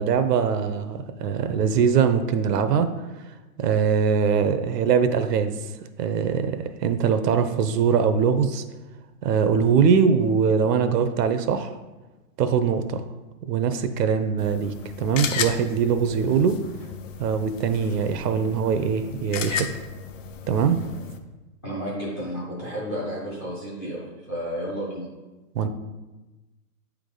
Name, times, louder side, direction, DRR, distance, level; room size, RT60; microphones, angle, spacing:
voice 1, 0.0-2.9 3.6-5.6 6.0-8.6 9.2-11.7 12.4-13.0 13.5-16.6 17.2-19.7 20.5-20.8 25.5-25.7, right 6 dB, 85° right, 9 dB, 0.8 m, -22 dB
sound 1, 14.4-21.2, left 6 dB, 55° left, 0.6 m, -34 dB
voice 2, 21.6-25.1, equal, 10° left, -6 dB, 0.5 m, -32 dB
8.7 x 3.5 x 3.9 m, 1.1 s
hypercardioid pair, 165°, 47 cm